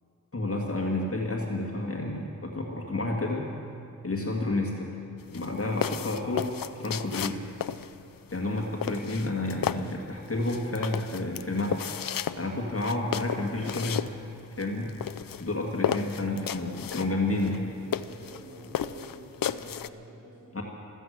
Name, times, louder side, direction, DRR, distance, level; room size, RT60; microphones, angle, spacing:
voice 1, 0.3-3.5 4.0-4.9 5.3-6.5 6.8-7.4 8.3-11.8 12.4-14.1 14.6-14.9 15.4-17.6 20.5-20.6, left 2 dB, 40° left, -1 dB, 1.9 m, -30 dB
sound 1, 5.2-19.9, left 9 dB, 75° left, 0.5 m, -34 dB
voice 2, 17.2-20.6, right 1 dB, 55° right, -8 dB, 3.8 m, -47 dB
15.5 x 14.5 x 6.6 m, 2.7 s
wide cardioid pair, 90°, 34 cm